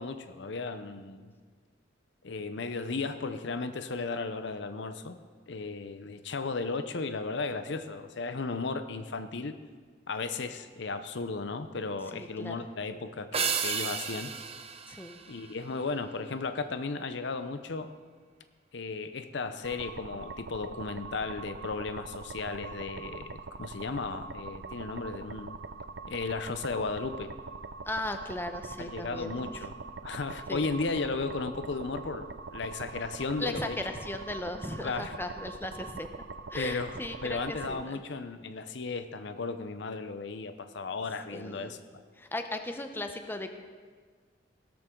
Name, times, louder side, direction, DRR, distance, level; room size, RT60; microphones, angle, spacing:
voice 1, 0.0-1.3 2.2-5.2 5.5-9.6 10.1-14.3 15.3-17.9 18.7-25.6 26.1-27.3 28.8-29.8 30.0-33.8 34.8-35.2 36.6-41.8, left 4 dB, 70° left, 10 dB, 0.7 m, -35 dB
voice 2, 12.1-12.6 14.9-15.2 27.9-29.4 30.5-30.7 33.4-36.2 36.5-38.0 41.3-41.8 42.2-43.5, left 1 dB, 10° left, 6 dB, 0.8 m, -37 dB
sound 1, 13.3-16.0, right 6 dB, 35° right, 0.9 m, -33 dB
sound 2, 19.6-37.8, right 4 dB, 60° right, 0.5 m, -43 dB
17.0 x 13.0 x 3.8 m, 1.6 s
head